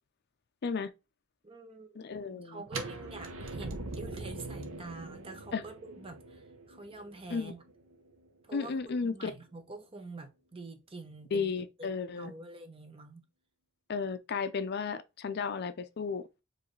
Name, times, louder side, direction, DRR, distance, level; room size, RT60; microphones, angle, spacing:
voice 1, 1.4-2.0 2.3-7.6 8.4-8.7 9.0-11.5 11.8-13.2, right 2 dB, 25° right, 0.8 m, -46 dB
voice 2, 2.0-2.6 5.5-5.6 7.3-7.5 8.5-9.3 11.3-12.3 13.9-16.2, left 5 dB, 50° left, 0.4 m, -34 dB
sound 1, 2.7-8.5, right 3 dB, 65° right, 0.8 m, -42 dB
4.7 x 3.2 x 3.1 m
head